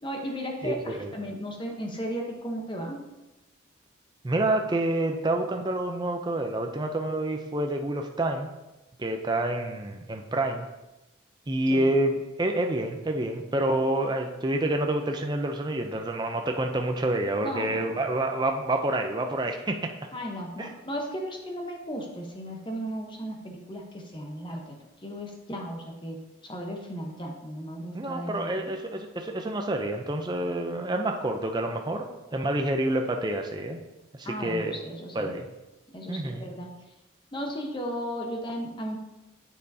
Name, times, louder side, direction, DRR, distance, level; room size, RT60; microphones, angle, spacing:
voice 1, 0.0-3.0 11.7-11.9 17.4-17.9 20.1-26.2 26.4-28.7 34.2-35.3 35.9-36.7 37.3-39.0, equal, 25° left, 1 dB, 0.9 m, -35 dB
voice 2, 0.6-1.1 4.2-8.5 9.0-10.7 11.5-19.7 20.6-20.7 27.9-33.8 34.4-34.7 35.1-35.5 36.1-36.5, right 1 dB, 20° right, 4 dB, 0.4 m, -28 dB
7.5 x 6.6 x 2.7 m, 1.0 s
head